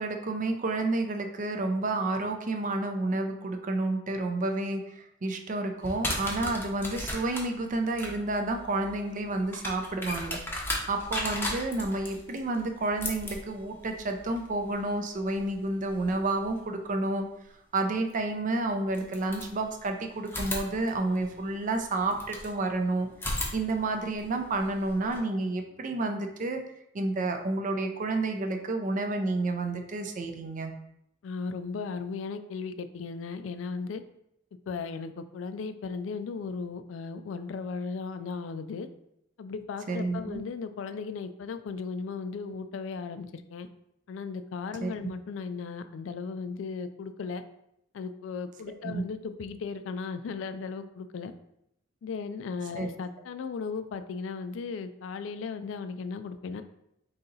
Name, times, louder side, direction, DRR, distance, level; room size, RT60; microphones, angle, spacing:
voice 1, 0.0-10.4 10.9-17.3 17.7-23.1 23.5-26.6 26.9-30.7 39.9-40.4 44.8-44.9 48.8-49.0 52.7-52.9, right 2 dB, 40° right, 5 dB, 0.5 m, -30 dB
sound 1, 5.8-16.6 18.1-18.2 18.9-19.9 20.3-22.5 23.1-25.2, left 1 dB, 10° left, 0.7 m, -37 dB
voice 2, 31.2-34.0 34.7-38.9 39.4-43.7 44.1-47.4 47.9-51.3 52.0-56.6, left 5 dB, 70° left, 10 dB, 0.3 m, -36 dB
3.9 x 2.8 x 3.8 m, 0.80 s
head